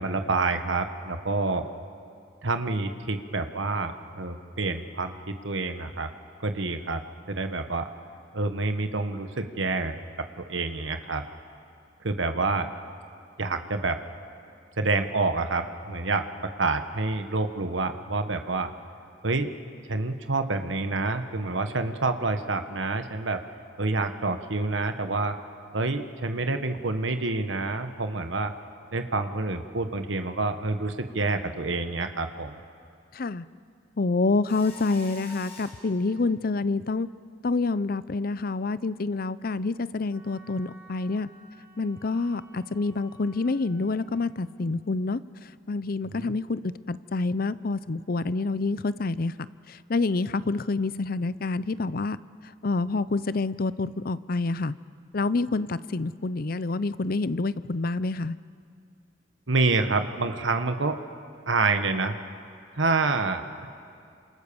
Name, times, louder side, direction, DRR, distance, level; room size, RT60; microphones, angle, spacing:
voice 1, 0.0-1.7 2.4-6.1 6.4-7.0 7.3-7.9 8.3-11.2 12.0-12.7 13.4-14.0 14.8-16.2 16.6-18.7 19.2-19.5 19.9-23.4 23.8-25.3 25.7-28.5 28.9-32.6 46.1-46.3 59.5-61.0 61.5-62.2 62.8-63.7, right 3 dB, 80° right, 7 dB, 1.4 m, -27 dB
voice 2, 33.1-33.4 34.0-37.1 37.4-41.3 41.8-45.2 45.7-49.3 49.7-52.2 52.6-54.7 55.1-58.4, left 3 dB, 50° left, 16 dB, 0.6 m, -27 dB
Mechanisms, 34.5-35.9, left 2 dB, 30° left, 5.6 m, -44 dB
Wind instrument woodwind instrument, 40.1-44.3, right 1 dB, 15° right, 5.1 m, -55 dB
28.0 x 26.5 x 7.0 m, 2.3 s
head